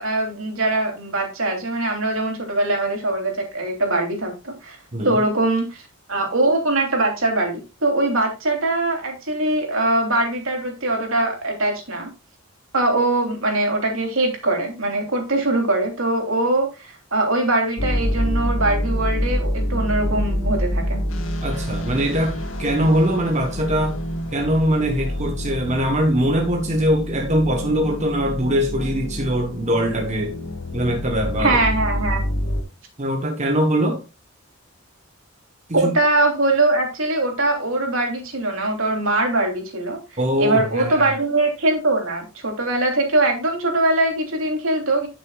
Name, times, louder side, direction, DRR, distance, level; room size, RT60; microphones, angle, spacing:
voice 1, 0.0-4.8 5.0-5.8 6.1-12.1 12.7-21.0 31.4-32.2 35.7-40.0 40.4-45.1, right 2 dB, 75° right, 3.2 m, -22 dB
sound 1, 17.8-32.6, equal, 75° left, 2.0 m, -26 dB
voice 2, 21.4-24.0 24.3-30.4 30.7-31.6 33.0-34.1 35.7-35.9 40.2-41.1, equal, 35° right, 1.2 m, -22 dB
11.5 x 6.2 x 2.4 m
head